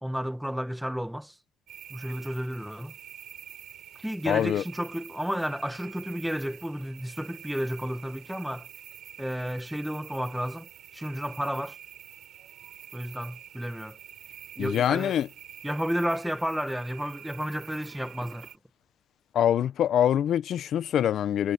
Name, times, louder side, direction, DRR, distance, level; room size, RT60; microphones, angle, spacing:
voice 1, 0.0-1.4 1.9-2.9 4.0-8.7 9.2-11.8 12.9-14.0 14.6-15.2 15.6-18.5, equal, ahead, 1.3 m, -32 dB
sound 1, 1.7-18.6, right 10 dB, 75° right, 5.2 m, -47 dB
voice 2, 4.3-4.6 14.6-15.3 19.3-21.5, left 10 dB, 70° left, 0.7 m, -24 dB
cardioid pair, 90°, 0 cm